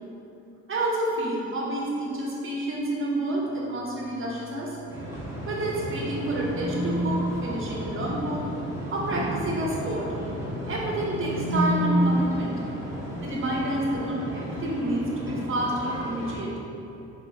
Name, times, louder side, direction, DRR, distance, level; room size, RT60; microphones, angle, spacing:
voice 1, 0.7-4.8 5.5-8.5 8.9-10.1 10.7-12.6 13.2-16.5, right 1 dB, 45° right, -3 dB, 0.9 m, -29 dB
sound 1, 4.7-7.0 10.0-11.6, equal, 85° right, 0.6 m, -37 dB
sound 2, 4.9-16.4, equal, 10° right, 0.9 m, -35 dB
3.0 x 3.0 x 3.5 m, 2.8 s
cardioid pair, 90°, 30 cm